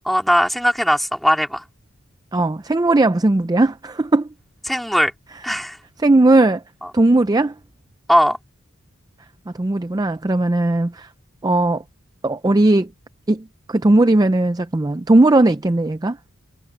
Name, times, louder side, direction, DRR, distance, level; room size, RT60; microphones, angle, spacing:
voice 1, 0.0-1.6 4.7-5.1 5.4-5.8 8.1-8.4, equal, ahead, 3.4 m, -18 dB
voice 2, 2.3-4.3 6.0-6.6 6.9-7.5 9.5-11.1 11.4-11.8 12.2-12.9 13.3-16.2, right 2 dB, 20° right, 0.4 m, -17 dB
head